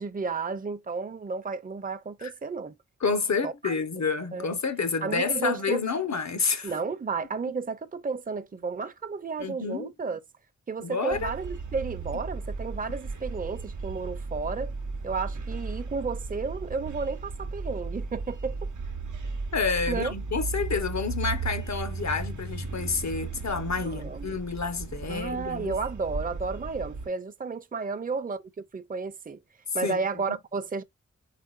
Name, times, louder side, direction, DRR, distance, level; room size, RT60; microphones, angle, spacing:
voice 1, 0.0-2.7 3.4-3.7 4.3-4.5 5.0-5.8 6.6-10.2 10.7-14.7 15.0-18.7 19.9-20.1 23.8-24.4 25.0-28.4 28.7-29.4 29.7-30.8, right 4 dB, 30° right, 0.6 m, -32 dB
voice 2, 3.0-6.7 9.4-9.9 10.8-11.3 19.5-25.7 29.8-30.0 30.3-30.4, left 5 dB, 70° left, 1.0 m, -29 dB
sound 1, 11.1-27.1, right 4 dB, 85° right, 0.7 m, -35 dB
4.8 x 3.9 x 2.4 m
cardioid pair, 45°, 29 cm